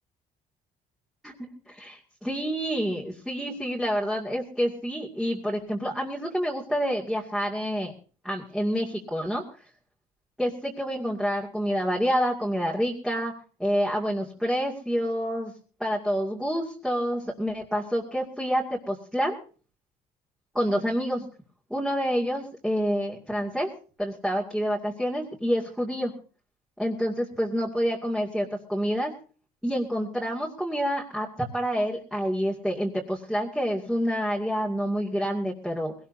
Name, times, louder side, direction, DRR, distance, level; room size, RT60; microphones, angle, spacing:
voice 1, 1.2-7.9 8.2-9.4 10.4-13.3 13.6-15.5 15.8-19.4 20.5-21.3 21.7-23.7 24.0-26.1 26.8-29.1 29.6-35.9, equal, ahead, -4 dB, 2.3 m, -28 dB
20.0 x 18.0 x 2.7 m, 0.39 s
cardioid pair, 110°, 17 cm